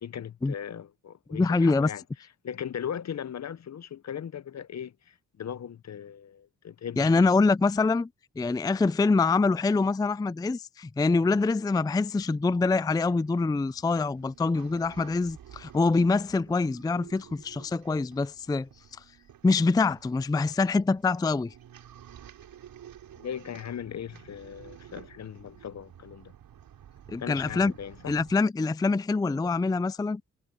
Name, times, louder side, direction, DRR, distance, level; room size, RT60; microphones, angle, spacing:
voice 1, 0.0-2.0 2.4-7.1 23.2-26.3 27.1-28.2, left 8 dB, 50° left, 0.8 m, -38 dB
voice 2, 1.3-1.9 7.0-8.1 8.4-18.7 19.4-21.5 27.1-27.7 28.1-30.2, left 3 dB, 10° left, 0.4 m, -25 dB
sound 1, 12.2-28.3, right 10 dB, 80° right, 4.8 m, -52 dB
cardioid pair, 60°, 34 cm